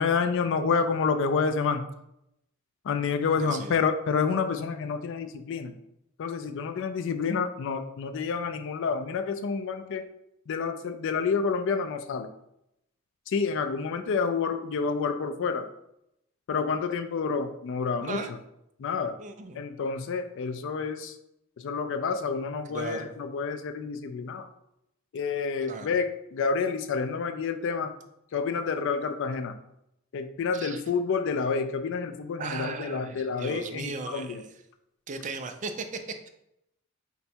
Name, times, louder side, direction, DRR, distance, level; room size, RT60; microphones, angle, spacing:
voice 1, 0.0-1.8 2.8-5.7 6.2-10.1 10.5-12.3 13.3-15.7 16.5-18.4 18.8-19.2 19.5-21.1 21.6-24.5 25.1-28.0 28.3-29.5 30.1-34.4, left 5 dB, 65° left, 8 dB, 0.4 m, -29 dB
voice 2, 3.4-3.7 18.0-18.3 19.2-19.6 22.7-23.1 25.6-26.0 30.5-30.8 32.4-34.5 35.1-36.3, right 4 dB, 35° right, 7 dB, 0.4 m, -37 dB
3.9 x 2.3 x 4.2 m, 0.81 s
head